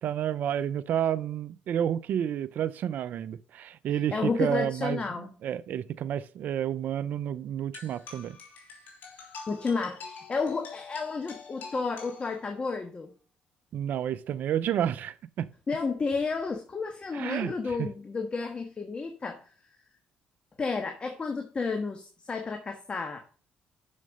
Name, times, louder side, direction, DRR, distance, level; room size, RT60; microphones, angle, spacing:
voice 1, 0.0-8.4 13.7-15.5 17.1-17.9, right 10 dB, 70° right, 0.5 m, -30 dB
voice 2, 4.1-5.3 9.5-13.1 15.7-19.5 20.6-23.2, left 4 dB, 35° left, 1.4 m, -31 dB
sound 1, 7.7-12.7, left 4 dB, 65° left, 3.4 m, -46 dB
6.6 x 6.4 x 5.2 m
supercardioid pair, 75°, 3 cm